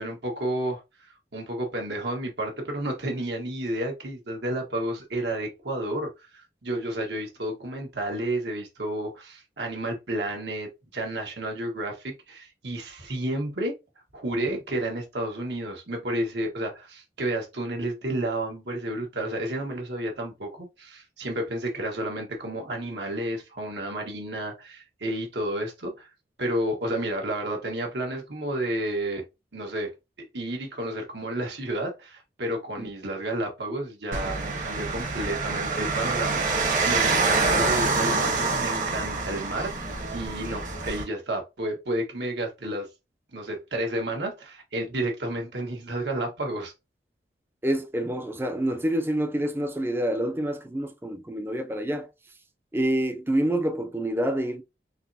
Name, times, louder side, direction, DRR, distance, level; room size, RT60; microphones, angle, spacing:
voice 1, 0.0-13.7 14.1-26.1 26.4-29.2 29.5-29.9 30.3-42.9 43.3-46.7, right 1 dB, 80° right, 1.4 m, -31 dB
sound 1, 34.1-41.0, right 3 dB, 45° right, 1.1 m, -26 dB
voice 2, 47.6-52.1 52.7-54.6, right 1 dB, 15° right, 0.4 m, -27 dB
4.0 x 3.0 x 2.7 m
head